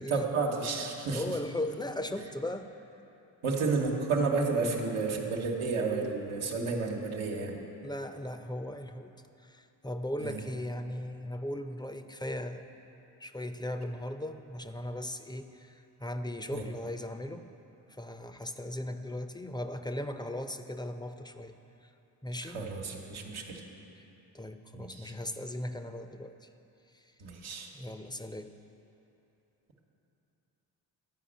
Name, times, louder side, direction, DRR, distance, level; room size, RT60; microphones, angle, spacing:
voice 1, 0.1-1.4 3.4-7.6 10.2-10.4 16.5-16.7 22.4-23.6 24.7-25.1 27.2-27.7, right 4 dB, 90° right, -1 dB, 1.2 m, -31 dB
voice 2, 1.1-2.8 7.8-9.2 9.4-12.6 13.2-17.5 18.0-21.5 22.2-22.7 24.3-26.4 26.9-27.0 27.7-28.6, left 1 dB, 10° left, 8 dB, 0.5 m, -38 dB
11.5 x 5.1 x 7.4 m, 3.0 s
supercardioid pair, 45°, 48 cm